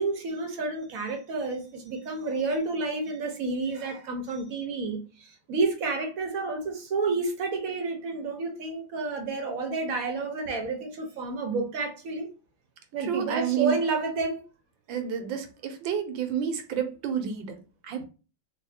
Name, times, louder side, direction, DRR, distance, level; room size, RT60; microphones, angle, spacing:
voice 1, 0.0-12.3 12.9-14.4, right 3 dB, 60° right, 1.0 m, -30 dB
voice 2, 13.0-13.8 14.9-18.0, right 9 dB, 80° right, 1.4 m, -30 dB
4.1 x 2.3 x 2.6 m
omnidirectional pair, 2.1 m